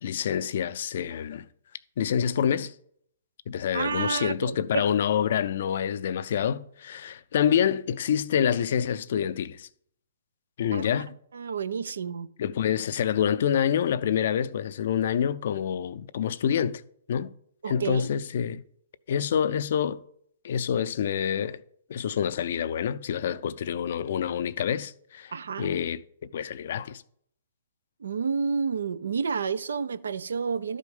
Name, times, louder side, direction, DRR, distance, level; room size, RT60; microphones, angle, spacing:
voice 1, 0.0-1.4 2.0-2.7 3.5-9.7 10.6-11.1 12.4-16.8 17.1-17.3 17.7-18.6 19.1-20.0 20.4-21.6 21.9-25.3 25.6-26.0 26.3-27.0, left 8 dB, 60° left, 0.5 m, -27 dB
voice 2, 3.7-4.9 10.7-11.0 11.3-12.3 17.6-18.1 25.3-25.8 28.0-30.8, right 5 dB, 75° right, 0.5 m, -30 dB
11.5 x 5.0 x 5.4 m
hypercardioid pair, 130°, 0 cm